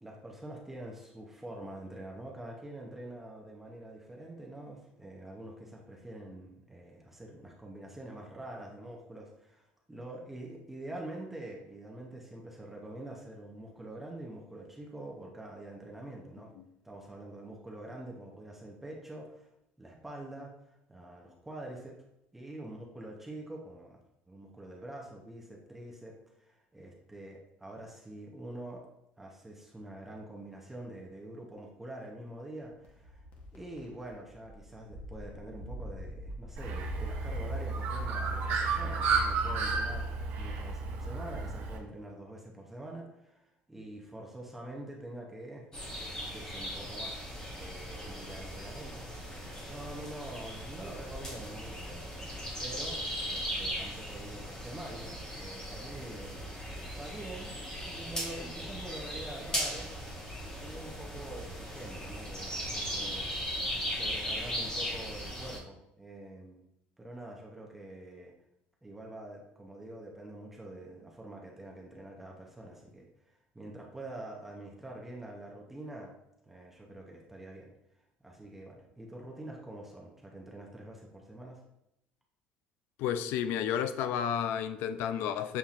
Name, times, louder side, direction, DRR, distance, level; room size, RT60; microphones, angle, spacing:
voice 1, 0.0-16.5 16.8-19.5 19.8-20.5 20.9-22.0 22.3-24.0 24.3-28.8 29.2-33.2 33.5-40.1 40.4-45.7 46.0-47.1 47.6-49.0 49.6-52.0 52.6-56.5 57.0-59.9 60.5-63.3 63.9-66.6 67.0-68.3 68.8-76.1 76.4-77.7 78.2-81.6, right 1 dB, 5° right, 0.6 m, -45 dB
sound 1, 32.8-37.6, right 1 dB, 45° left, 0.9 m, -45 dB
Bird, 36.6-41.8, right 4 dB, 65° right, 0.8 m, -32 dB
sound 2, 45.7-65.6, equal, 20° left, 0.9 m, -38 dB
voice 2, 83.0-85.6, left 9 dB, 70° left, 0.3 m, -31 dB
7.0 x 2.7 x 2.4 m
cardioid pair, 150°, 4 cm